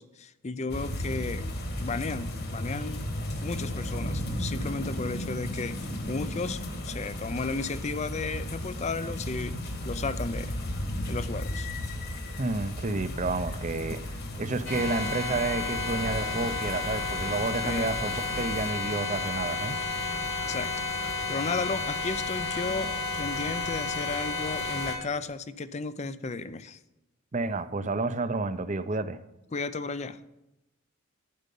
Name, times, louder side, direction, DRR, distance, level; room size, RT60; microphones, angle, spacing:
voice 1, 0.0-1.5 1.8-3.0 3.4-9.6 9.8-10.5 11.1-11.7 13.9-14.0 17.6-17.9 20.4-20.7 21.3-26.8 29.5-30.2, left 4 dB, 30° left, 0.5 m, -34 dB
sound 1, 0.7-18.7, left 1 dB, 45° left, 1.7 m, -35 dB
voice 2, 12.4-14.0 14.4-19.8 27.3-29.2, right 3 dB, 35° right, 0.6 m, -30 dB
sound 2, 14.7-25.0, left 3 dB, 60° left, 2.5 m, -32 dB
12.0 x 9.5 x 5.4 m
head